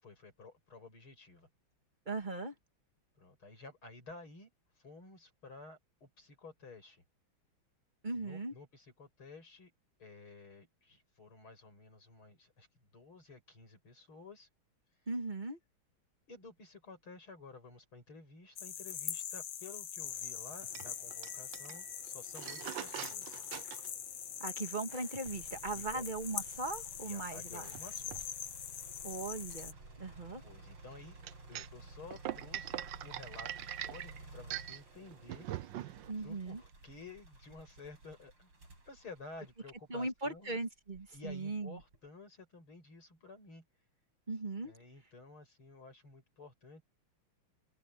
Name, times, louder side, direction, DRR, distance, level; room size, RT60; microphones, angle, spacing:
voice 1, 0.0-1.5 3.2-4.5 4.8-7.0 8.1-9.7 10.0-14.5 16.3-23.4 25.7-26.0 27.0-28.2 30.4-35.5 36.2-38.5 38.9-40.6 41.1-43.7 44.6-46.8, left 3 dB, 75° left, 8.3 m, -53 dB
voice 2, 2.1-2.5 8.0-8.5 15.1-15.6 24.4-27.6 29.0-30.4 36.1-36.6 39.9-41.8 44.3-44.7, right 3 dB, 25° right, 1.8 m, -39 dB
sound 1, 18.6-29.7, left 9 dB, 60° left, 1.5 m, -43 dB
sound 2, 20.0-36.7, right 13 dB, 70° right, 1.3 m, -45 dB
sound 3, 25.2-40.3 40.9-42.1, right 2 dB, 85° right, 9.0 m, -55 dB
omnidirectional pair, 2.3 m